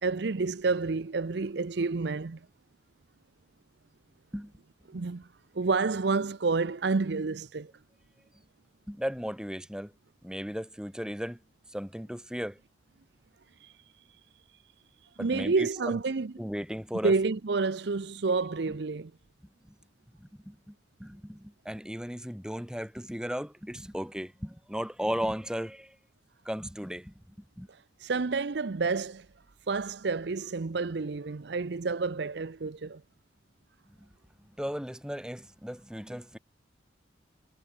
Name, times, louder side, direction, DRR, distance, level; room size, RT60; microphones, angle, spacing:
voice 1, 0.0-2.4 4.9-5.3 5.5-7.7 13.6-13.7 15.2-16.3 17.0-19.1 28.0-29.3 29.7-33.0, right 4 dB, 60° right, 0.6 m, -29 dB
voice 2, 8.9-9.9 10.2-11.4 11.7-12.6 15.2-16.0 16.4-17.1 19.7-19.8 20.2-20.7 21.0-25.9 26.4-27.1 27.6-27.7 34.6-36.4, equal, 5° right, 2.6 m, -36 dB
head